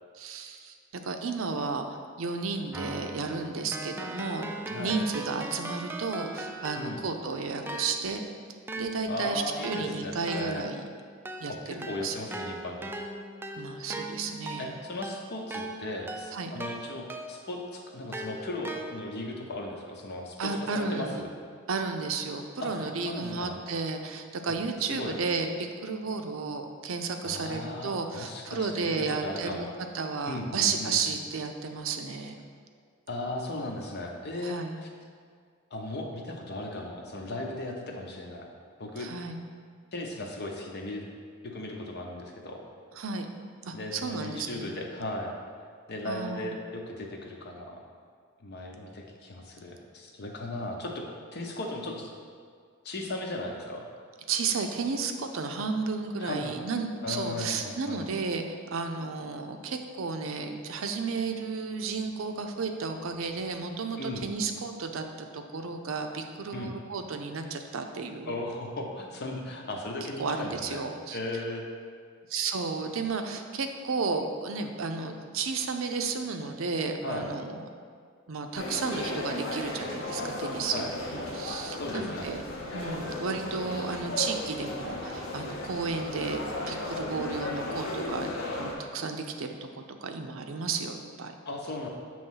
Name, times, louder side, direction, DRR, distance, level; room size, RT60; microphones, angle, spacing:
voice 1, 0.1-1.9 2.2-8.2 8.8-10.9 11.4-12.1 13.6-14.7 16.3-16.5 20.4-21.3 21.7-29.7 29.9-32.4 34.4-34.8 39.0-39.4 43.0-43.3 43.6-44.7 46.0-46.5 54.3-68.4 70.2-71.2 72.3-77.7 78.3-82.4 82.7-88.3 88.6-91.3, right 4 dB, 75° right, 5 dB, 0.5 m, -33 dB
Keyboard (musical), 2.7-7.2 7.7-17.6 18.1-19.3, right 1 dB, 10° right, 0.3 m, -39 dB
voice 2, 4.7-5.0 6.8-7.0 9.1-10.6 11.5-12.9 14.6-21.3 22.6-23.6 24.8-25.2 27.2-29.7 30.3-31.0 33.1-34.9 35.7-38.5 38.8-39.1 39.9-41.1 41.4-42.6 43.7-45.3 45.9-47.8 48.4-51.0 51.3-52.1 52.8-53.8 56.2-56.5 57.0-58.1 64.0-64.2 66.5-66.7 68.3-70.8 71.1-71.7 77.0-77.3 80.7-80.9 81.7-82.3 91.5-91.9, left 1 dB, 55° left, 1 dB, 0.8 m, -36 dB
sound 1, 78.5-88.7, left 2 dB, 80° left, 1.0 m, -35 dB
6.9 x 3.1 x 5.5 m, 2.1 s
head